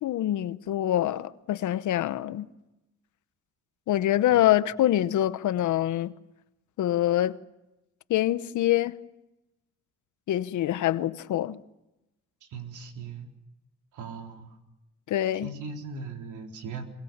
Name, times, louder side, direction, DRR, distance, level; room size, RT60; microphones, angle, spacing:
voice 1, 0.0-2.5 3.9-6.1 6.8-7.4 8.1-9.0 10.3-11.6 15.1-15.5, left 13 dB, 75° left, 1.0 m, -25 dB
voice 2, 12.5-13.3 13.9-14.6 15.4-16.8, right 4 dB, 80° right, 3.8 m, -39 dB
24.0 x 22.5 x 7.3 m
cardioid pair, 90°, 30 cm